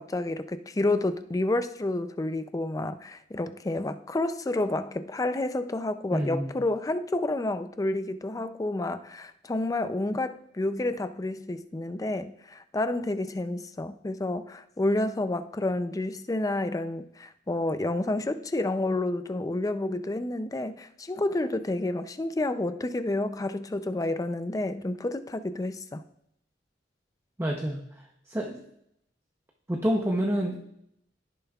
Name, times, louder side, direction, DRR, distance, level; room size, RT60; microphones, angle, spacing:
voice 1, 0.0-26.0, left 2 dB, 20° left, 11 dB, 0.4 m, -29 dB
voice 2, 6.1-6.5 27.4-27.9 28.3-28.6 29.7-30.8, equal, 15° right, 1 dB, 0.7 m, -28 dB
16.0 x 7.0 x 2.4 m, 0.74 s
head